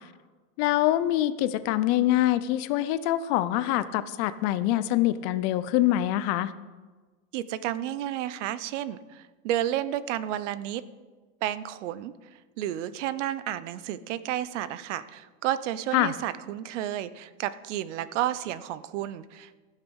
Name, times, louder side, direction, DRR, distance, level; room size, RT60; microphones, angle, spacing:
voice 1, 0.6-6.5 15.9-16.1, left 14 dB, 45° left, 14 dB, 0.6 m, -25 dB
voice 2, 7.3-10.8 11.4-12.1 12.6-19.5, right 12 dB, 80° right, 15 dB, 0.8 m, -31 dB
15.5 x 6.6 x 6.4 m, 1.3 s
supercardioid pair, 155°, 36 cm